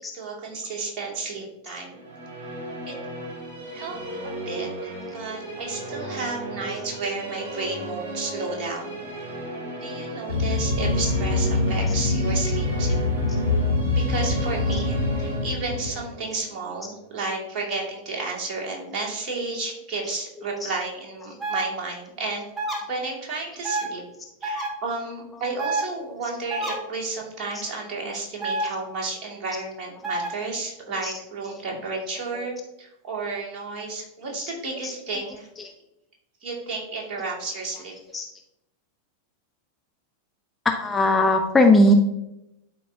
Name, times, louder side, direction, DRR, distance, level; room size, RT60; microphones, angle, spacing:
voice 1, 0.1-2.0 2.9-3.0 3.7-4.0 4.2-9.0 9.8-13.1 13.9-22.5 22.9-24.0 24.4-35.5 36.4-38.0, right 3 dB, 35° right, -2 dB, 2.4 m, -32 dB
Musical instrument, 1.9-17.3, right 2 dB, 55° right, 2.2 m, -36 dB
sound 1, 10.3-16.0, left 3 dB, 80° left, 1.6 m, -24 dB
sound 2, 21.4-21.6 22.6-22.8 23.6-23.9 24.4-24.7 25.6-25.8 26.5-26.7 28.4-28.6 30.0-30.3, right 2 dB, 10° right, 1.8 m, -27 dB
voice 2, 34.8-35.2 38.1-38.2 40.6-41.9, left 1 dB, 10° left, 2 dB, 0.7 m, -20 dB
11.5 x 4.6 x 2.8 m, 0.86 s
figure-of-eight pair, 90°, 0 cm